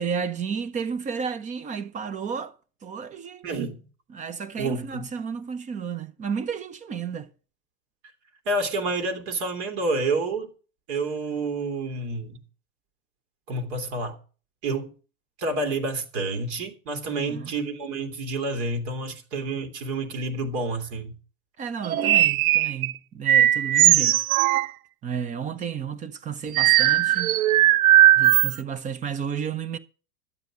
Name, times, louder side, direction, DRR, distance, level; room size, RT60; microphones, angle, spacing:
voice 1, 0.0-2.6 2.8-3.5 4.1-7.3 17.1-17.5 21.6-24.3 25.0-27.4 28.2-29.8, right 7 dB, 15° right, 0.8 m, -32 dB
voice 2, 3.4-3.8 4.6-5.1 8.4-10.5 10.9-12.4 13.5-14.2 14.6-14.9 15.4-21.2, right 2 dB, 55° right, 2.8 m, -29 dB
sound 1, 21.8-22.9 23.3-24.7 26.5-28.6, right 13 dB, 75° right, 0.6 m, -18 dB
12.5 x 8.2 x 6.0 m
hypercardioid pair, 130°, 42 cm